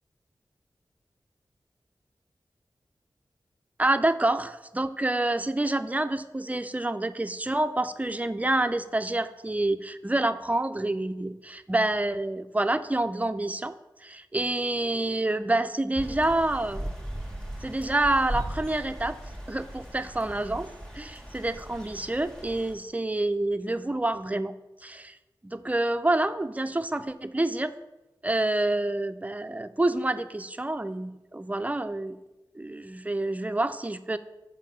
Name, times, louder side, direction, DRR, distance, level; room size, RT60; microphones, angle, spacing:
voice 1, 3.8-13.7 14.0-16.9 17.6-19.2 19.5-20.7 20.9-24.5 24.8-25.2 25.4-27.7 28.2-32.2 32.5-34.2, right 2 dB, 20° right, 11 dB, 0.5 m, -27 dB
sound 1, 15.9-22.7, right 1 dB, 10° left, 1.6 m, -38 dB
5.7 x 4.9 x 6.6 m, 1.0 s
cardioid pair, 45°, 8 cm